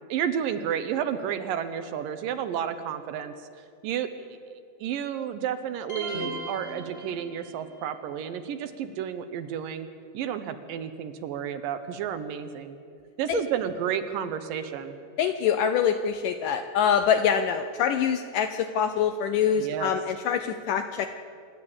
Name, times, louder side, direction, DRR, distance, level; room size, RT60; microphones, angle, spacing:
voice 1, 0.1-3.5 3.8-4.1 4.8-9.9 10.1-12.8 13.2-14.9 19.6-19.9, right 9 dB, 75° right, 10 dB, 2.3 m, -31 dB
sound 1, 5.9-7.7, right 2 dB, 35° left, 0.9 m, -37 dB
voice 2, 15.2-21.1, left 7 dB, 75° left, 8 dB, 2.0 m, -25 dB
26.5 x 11.5 x 8.7 m, 2.4 s
omnidirectional pair, 4.4 m